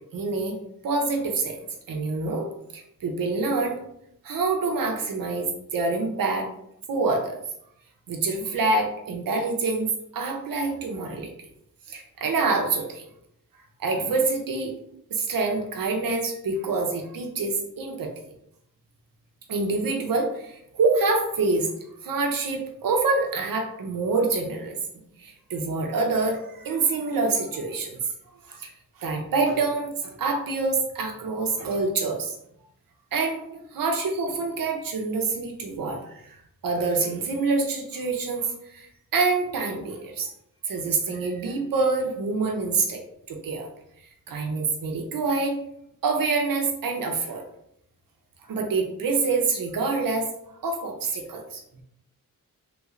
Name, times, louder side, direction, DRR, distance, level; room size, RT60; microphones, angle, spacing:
voice 1, 0.1-0.6 0.8-1.6 1.9-2.5 2.7-3.8 4.2-6.5 6.9-7.4 8.1-11.3 11.9-13.0 13.8-14.7 15.1-18.1 19.5-21.7 22.0-24.8 25.2-28.0 28.5-28.7 29.0-32.4 33.1-36.4 36.6-40.3 40.7-43.0 43.3-43.7 44.3-45.6 46.0-47.4 48.5-50.3 50.6-51.6, right 3 dB, 90° right, 2 dB, 0.7 m, -26 dB
3.4 x 3.1 x 2.4 m, 0.75 s
wide cardioid pair, 95°, 33 cm